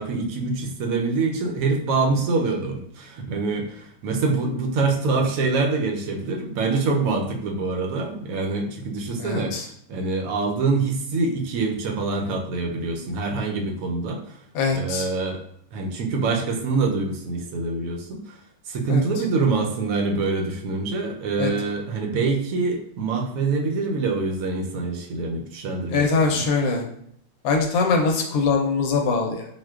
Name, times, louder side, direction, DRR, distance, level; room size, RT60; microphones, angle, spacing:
voice 1, 0.0-9.6 9.9-14.4 14.7-15.4 15.7-18.4 18.7-26.5, right 3 dB, 70° right, 2 dB, 0.9 m, -25 dB
voice 2, 9.2-9.7 14.5-15.1 18.9-19.0 21.4-21.5 25.9-26.8 27.4-29.5, left 4 dB, 75° left, 2 dB, 1.0 m, -22 dB
4.2 x 2.2 x 2.3 m, 0.68 s
omnidirectional pair, 1.6 m